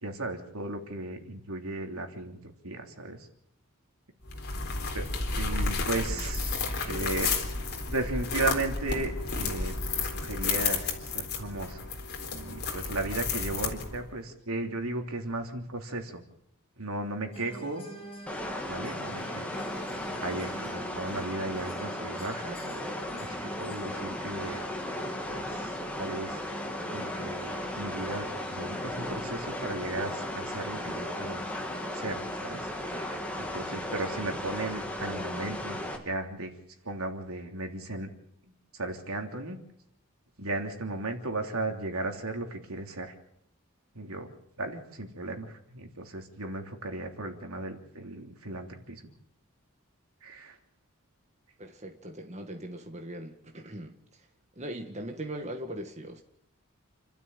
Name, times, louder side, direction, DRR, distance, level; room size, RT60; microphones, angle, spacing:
voice 1, 0.0-3.3 4.9-5.1 5.4-11.9 12.3-16.2 16.8-17.9 18.7-19.6 20.2-22.7 23.2-24.6 25.3-26.4 26.9-31.5 31.9-35.8 36.0-36.5 36.8-38.1 38.7-39.6 40.4-43.1 43.9-44.3 44.6-49.0 50.2-50.6, right 2 dB, 80° right, 3.2 m, -36 dB
sound 1, 4.3-14.1, left 4 dB, 50° left, 3.9 m, -32 dB
sound 2, 17.3-32.4, equal, 25° left, 5.3 m, -46 dB
sound 3, 18.3-36.0, left 1 dB, 5° left, 2.9 m, -36 dB
voice 2, 51.6-54.3 54.6-56.2, right 1 dB, 30° right, 1.8 m, -40 dB
29.0 x 12.5 x 9.1 m
head